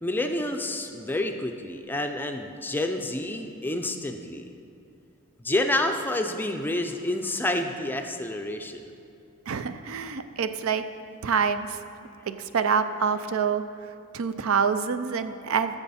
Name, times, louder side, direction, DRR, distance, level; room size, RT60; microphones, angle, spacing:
voice 1, 0.0-4.5 5.4-8.8, left 1 dB, 10° left, 5 dB, 0.4 m, -29 dB
voice 2, 9.5-10.8 11.2-11.8 12.3-13.6 14.1-15.8, right 6 dB, 75° right, 11 dB, 0.5 m, -26 dB
14.0 x 6.9 x 4.2 m, 2.6 s
head